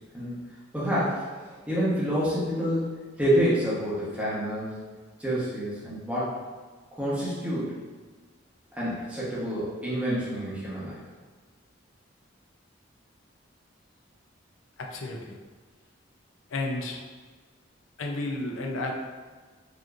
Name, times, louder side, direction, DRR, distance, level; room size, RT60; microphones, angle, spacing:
voice 1, 0.1-2.9 3.2-4.8 5.2-6.3 7.0-7.7 8.7-11.0, equal, 5° right, -9 dB, 1.0 m, -28 dB
voice 2, 14.8-15.4 16.5-17.0 18.0-18.9, left 2 dB, 80° left, 1 dB, 0.5 m, -32 dB
4.8 x 2.9 x 2.5 m, 1.4 s
head